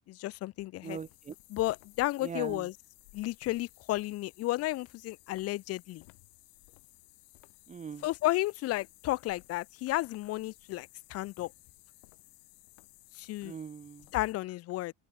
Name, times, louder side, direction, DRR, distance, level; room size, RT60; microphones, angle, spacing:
voice 1, 0.1-1.0 1.5-2.7 3.1-6.0 8.0-11.5 13.1-13.5 14.1-14.9, left 17 dB, 40° left, 0.8 m, -33 dB
sound 1, 0.8-14.3, left 40 dB or more, 80° left, 3.8 m, -58 dB
voice 2, 0.8-1.3 2.2-2.7 7.7-8.0 13.4-14.1, right 6 dB, 20° right, 1.7 m, -41 dB
open air
cardioid pair, 155°, 36 cm